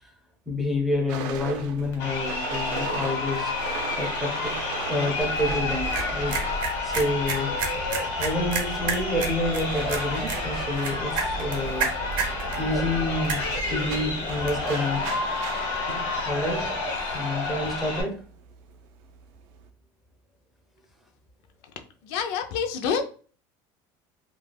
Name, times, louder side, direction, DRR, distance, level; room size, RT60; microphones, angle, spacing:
voice 1, 0.5-3.5 4.0-4.5 4.9-6.4 6.8-7.6 8.2-11.9 12.5-15.1 16.2-18.2, left 1 dB, ahead, 0.4 m, -28 dB
sound 1, 1.1-7.8 8.1-19.7, right 7 dB, 85° right, 0.4 m, -39 dB
Crowd, 1.9-18.0, left 3 dB, 85° left, 1.1 m, -30 dB
sound 2, 5.2-14.7, right 4 dB, 50° right, 0.7 m, -33 dB
voice 2, 22.0-23.0, left 6 dB, 70° left, 0.4 m, -27 dB
2.3 x 2.1 x 3.2 m
cardioid pair, 165°, 10 cm